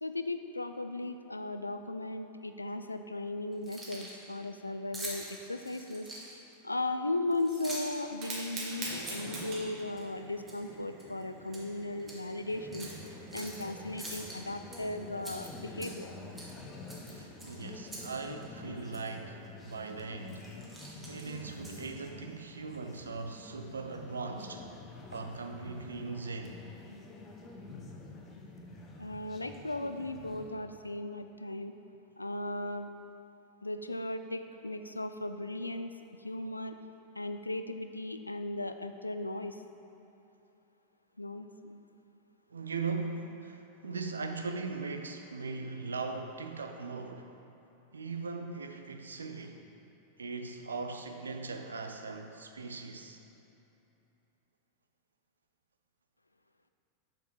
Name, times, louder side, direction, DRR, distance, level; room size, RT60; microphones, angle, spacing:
voice 1, 0.0-6.1 6.6-12.9 13.3-16.1 29.0-31.7 32.2-32.9 33.6-35.9 36.2-36.8 37.1-39.6 41.2-41.8, left 2 dB, 85° left, 9 dB, 0.3 m, -37 dB
Keys jangling, 3.5-4.2 4.9-6.5 7.3-8.0 8.5-10.0 10.5-10.7 11.0-11.6 12.0-12.2 12.7-13.6 14.0-14.8 15.2-16.1 16.4-16.6 16.9-18.1 18.4-18.5 18.9-19.1 19.7-19.9 20.3-22.0, right 2 dB, 15° right, 1.6 m, -45 dB
Fire, 8.0-16.9, right 2 dB, 40° right, 1.8 m, -46 dB
sound 1, 12.5-30.5, left 3 dB, 25° left, 0.9 m, -48 dB
voice 2, 17.1-20.5 21.1-24.7 25.1-26.6 42.5-47.3 47.9-49.6 50.2-53.2, right 4 dB, 75° right, 5 dB, 0.6 m, -39 dB
6.7 x 6.5 x 4.6 m, 2.9 s
figure-of-eight pair, 90°, 0 cm